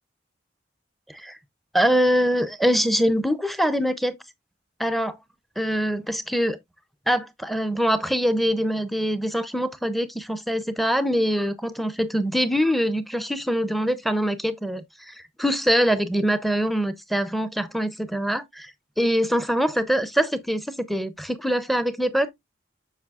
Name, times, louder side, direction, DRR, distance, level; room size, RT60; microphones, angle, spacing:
voice 1, 1.7-4.1 4.8-5.2 5.6-6.6 7.1-18.7 19.0-22.3, equal, ahead, 0.5 m, -24 dB
7.2 x 6.0 x 2.3 m
head